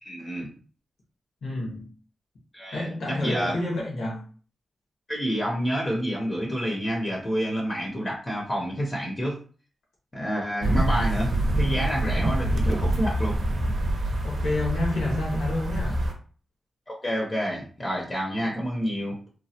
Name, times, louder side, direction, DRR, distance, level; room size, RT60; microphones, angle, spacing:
voice 1, 0.0-0.5 2.5-3.6 5.1-9.4 10.1-13.4 16.9-19.2, equal, 25° left, -1 dB, 0.7 m, -29 dB
voice 2, 1.4-1.9 2.7-4.2 14.2-16.0 18.4-18.5, left 2 dB, 90° left, -3 dB, 1.3 m, -29 dB
sound 1, 10.6-16.1, right 1 dB, 65° right, 0.7 m, -26 dB
3.0 x 2.2 x 2.8 m, 0.41 s
cardioid pair, 90°, 0 cm